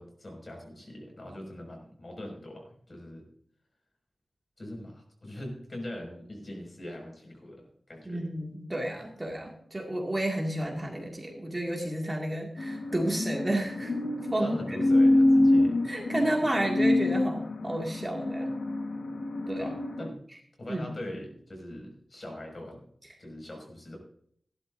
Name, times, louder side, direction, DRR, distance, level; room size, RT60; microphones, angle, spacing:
voice 1, 0.0-3.2 4.6-8.2 13.1-13.2 14.4-15.8 19.6-20.2 20.6-22.9 23.2-24.0, left 1 dB, 40° left, 1 dB, 5.9 m, -42 dB
voice 2, 8.1-13.9 14.3-14.8 15.8-18.5 19.5-19.7 20.7-20.9, right 1 dB, 25° right, 0 dB, 2.2 m, -31 dB
sound 1, 12.6-20.1, left 1 dB, 75° left, 1.4 m, -26 dB
17.5 x 12.0 x 2.7 m, 0.64 s
wide cardioid pair, 90°, 0 cm